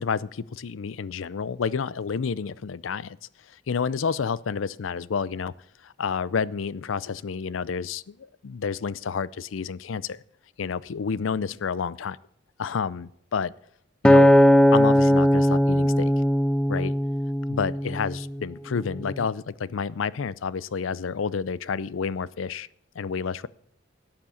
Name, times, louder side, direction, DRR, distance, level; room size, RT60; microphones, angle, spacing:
voice 1, 0.0-3.2 3.7-5.5 5.8-10.2 10.6-12.2 12.6-13.5 14.0-14.3 14.7-16.1 16.7-16.9 17.5-22.7 23.0-23.5, left 6 dB, 85° left, 20 dB, 0.5 m, -29 dB
Acoustic guitar, 14.0-18.4 19.0-19.2, equal, 5° left, 0.5 m, -19 dB
12.0 x 8.8 x 7.0 m, 0.72 s
head